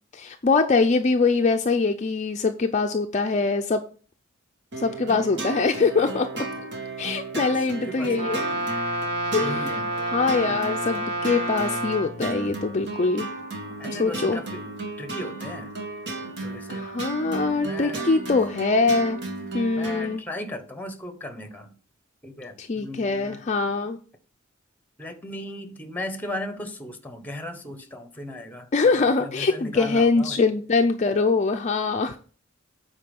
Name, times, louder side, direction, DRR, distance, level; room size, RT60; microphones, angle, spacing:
voice 1, 0.1-3.8 4.8-6.3 7.0-8.4 9.3-9.7 10.0-13.3 13.9-14.4 16.7-19.2 19.5-20.2 22.6-24.0 28.7-32.2, left 4 dB, 35° left, 0.5 m, -23 dB
sound 1, 4.7-20.2, right 2 dB, 60° right, 1.7 m, -34 dB
voice 2, 7.3-8.5 9.4-9.9 10.4-10.6 13.8-14.6 15.0-15.7 16.2-16.9 17.6-18.1 19.7-21.8 22.2-23.4 25.0-28.7 29.0-30.4, left 1 dB, 10° left, 1.0 m, -37 dB
Brass instrument, 8.1-12.1, right 2 dB, 30° right, 1.6 m, -29 dB
8.5 x 4.5 x 5.3 m
head